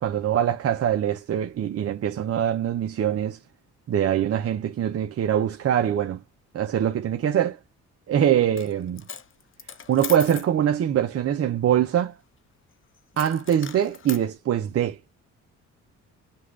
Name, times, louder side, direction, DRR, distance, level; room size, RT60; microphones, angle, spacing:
voice 1, 0.0-3.4 3.9-6.2 6.5-7.6 8.1-9.0 9.9-12.1 13.2-15.0, right 10 dB, 50° right, 0.7 m, -23 dB
Coin (dropping), 8.4-8.7 9.0-10.5 13.1-14.2, left 7 dB, 45° left, 0.8 m, -38 dB
5.6 x 2.5 x 3.3 m
cardioid pair, 90°, 30 cm